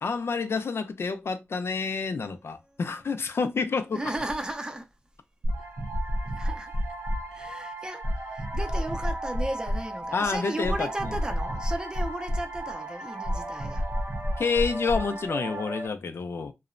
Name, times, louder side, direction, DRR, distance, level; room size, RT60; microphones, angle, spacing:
voice 1, 0.0-4.0 10.1-11.1 14.4-16.5, left 5 dB, 65° left, 0.3 m, -28 dB
voice 2, 3.9-4.9 6.3-6.7 7.3-13.9, right 1 dB, 20° right, 0.5 m, -35 dB
sound 1, 5.4-15.9, equal, 80° right, 0.7 m, -31 dB
2.9 x 2.0 x 2.4 m
wide cardioid pair, 90°, 4 cm